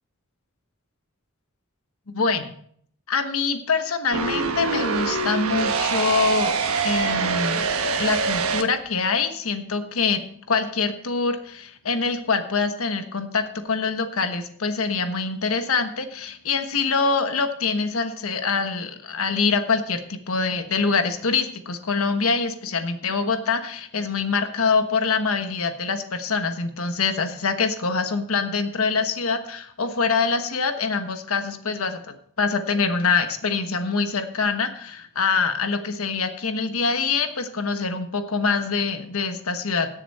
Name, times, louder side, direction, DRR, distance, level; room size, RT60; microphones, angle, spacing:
voice 1, 2.1-2.5 3.1-6.5 6.8-7.7 8.0-10.2 10.5-39.9, left 4 dB, 75° left, 8 dB, 1.2 m, -24 dB
sound 1, 4.1-8.6, right 4 dB, 80° right, 1.2 m, -24 dB
17.0 x 7.1 x 4.2 m, 0.63 s
head